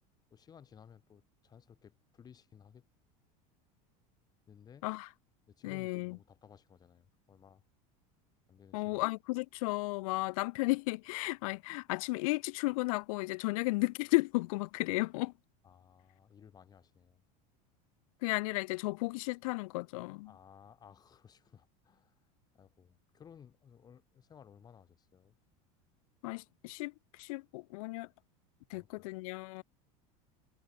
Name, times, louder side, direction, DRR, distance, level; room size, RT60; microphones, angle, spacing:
voice 1, 0.3-2.9 4.5-4.8 5.5-7.6 8.5-9.0 15.6-17.2 20.3-22.1 22.5-25.4 28.7-29.1, left 8 dB, 20° left, 2.2 m, -58 dB
voice 2, 5.6-6.2 8.7-15.3 18.2-20.3 26.2-26.9 27.2-28.1 28.7-29.6, left 24 dB, 75° left, 0.5 m, -34 dB
supercardioid pair, 155°, 18 cm